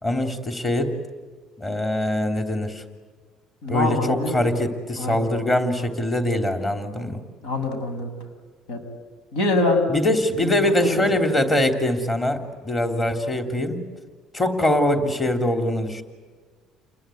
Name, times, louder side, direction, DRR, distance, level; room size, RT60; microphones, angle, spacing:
voice 1, 0.0-1.0 1.6-2.8 3.7-7.2 9.9-13.8 14.3-16.0, left 1 dB, 20° left, 6 dB, 3.2 m, -23 dB
voice 2, 3.6-4.4 5.0-5.2 7.4-8.1 8.7-8.8 9.3-9.9 10.4-11.0, left 2 dB, 85° left, 7 dB, 7.3 m, -24 dB
29.5 x 21.5 x 9.2 m, 1.5 s
cardioid pair, 140°, 0 cm